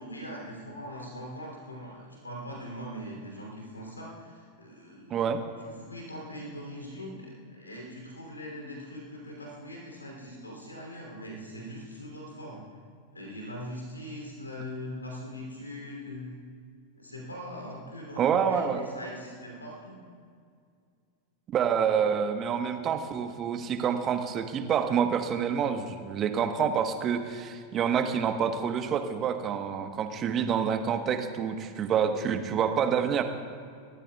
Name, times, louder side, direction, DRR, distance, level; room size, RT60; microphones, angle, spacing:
voice 1, 0.0-12.6 13.1-16.4 16.9-20.0, equal, 80° left, -1 dB, 3.0 m, -41 dB
voice 2, 18.2-18.8 21.5-33.2, right 7 dB, 30° right, 7 dB, 1.2 m, -27 dB
29.0 x 14.0 x 2.4 m, 2.2 s
figure-of-eight pair, 90°, 0 cm